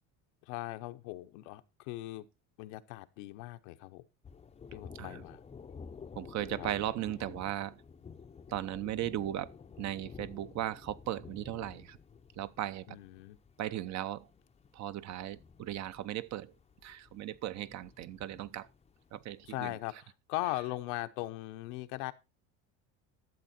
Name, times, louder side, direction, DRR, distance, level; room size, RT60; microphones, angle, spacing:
voice 1, 0.4-2.2 2.6-4.0 4.7-5.4 6.6-6.7 12.9-13.4 19.4-22.1, left 18 dB, 85° left, 1.0 m, -39 dB
Thunder, 4.2-19.8, left 5 dB, 15° left, 0.6 m, -52 dB
voice 2, 6.2-7.8 8.5-9.5 9.8-12.0 12.4-13.0 13.6-14.3 14.7-16.5 16.8-18.7 19.1-19.8, right 13 dB, 45° right, 0.8 m, -37 dB
12.5 x 7.5 x 4.3 m
cardioid pair, 120°, 38 cm